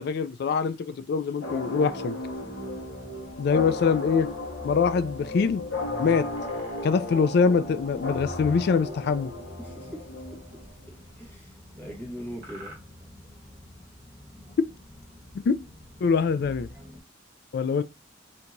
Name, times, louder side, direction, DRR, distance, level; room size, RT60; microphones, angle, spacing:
voice 1, 0.0-2.1 3.4-4.3 4.6-5.6 6.0-6.2 6.8-9.3 15.5-15.6 16.0-16.7 17.5-17.8, left 5 dB, 55° left, 0.3 m, -24 dB
sound 1, 1.4-10.9, left 2 dB, 75° left, 1.2 m, -35 dB
sound 2, 2.2-17.0, left 1 dB, 10° right, 0.9 m, -50 dB
sound 3, 6.2-7.2 7.7-8.0 8.3-9.2 10.0-10.1 10.7-11.8 12.4-12.8, right 1 dB, 50° right, 1.4 m, -49 dB
voice 2, 9.6-10.4 10.9-12.8, equal, 10° left, 1.3 m, -41 dB
4.4 x 2.8 x 2.6 m
head